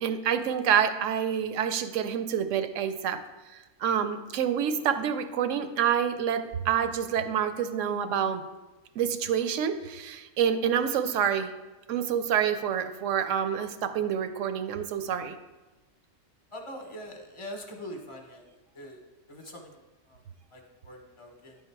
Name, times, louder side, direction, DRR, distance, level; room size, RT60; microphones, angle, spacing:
voice 1, 0.0-3.2 3.8-8.4 9.0-11.5 11.9-15.3, right 8 dB, 80° right, 10 dB, 0.9 m, -27 dB
voice 2, 16.5-18.4 18.7-19.0 19.3-19.7 20.1-20.2 20.5-21.6, equal, 30° left, 2 dB, 0.9 m, -43 dB
10.0 x 3.7 x 4.6 m, 1.1 s
omnidirectional pair, 1.3 m